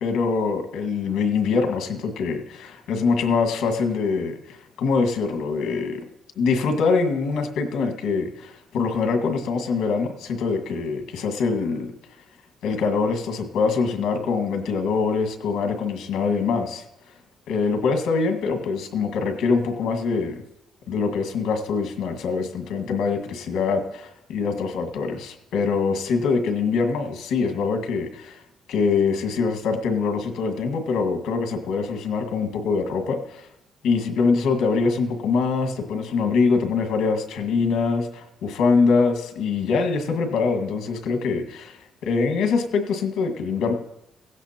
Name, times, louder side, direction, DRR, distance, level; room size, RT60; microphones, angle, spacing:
voice 1, 0.0-6.0 6.4-11.9 12.6-16.8 17.5-20.4 20.9-24.0 24.3-28.4 28.7-33.5 33.8-43.7, left 4 dB, 80° left, 6 dB, 1.7 m, -24 dB
16.5 x 15.5 x 2.9 m, 0.87 s
cardioid pair, 155°, 0 cm